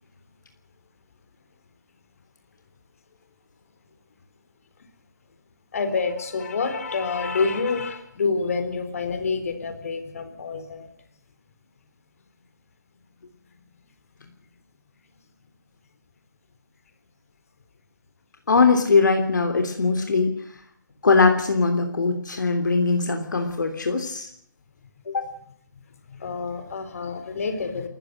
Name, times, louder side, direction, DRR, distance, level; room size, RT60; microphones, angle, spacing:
voice 1, 5.7-10.9 26.2-27.9, left 4 dB, 45° left, 9 dB, 4.0 m, -27 dB
voice 2, 18.5-20.4 21.0-24.3 25.0-25.3, left 4 dB, 65° left, 6 dB, 3.2 m, -21 dB
30.0 x 15.0 x 6.5 m, 0.70 s
hypercardioid pair, 165°, 11 cm